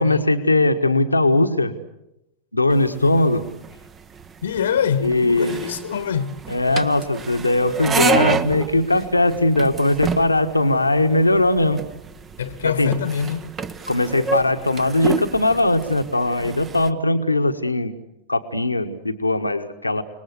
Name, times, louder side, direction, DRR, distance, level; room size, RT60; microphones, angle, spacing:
voice 1, 0.0-1.7 2.5-3.4 5.0-5.7 6.5-11.8 12.6-12.9 13.9-17.9 18.3-20.0, left 2 dB, 85° left, 1.4 m, -19 dB
sound 1, 2.7-16.9, right 5 dB, 25° right, 1.2 m, -29 dB
voice 2, 4.4-6.4 12.4-13.5, left 7 dB, 65° left, 1.4 m, -25 dB
30.0 x 20.0 x 8.2 m
figure-of-eight pair, 90°, 0 cm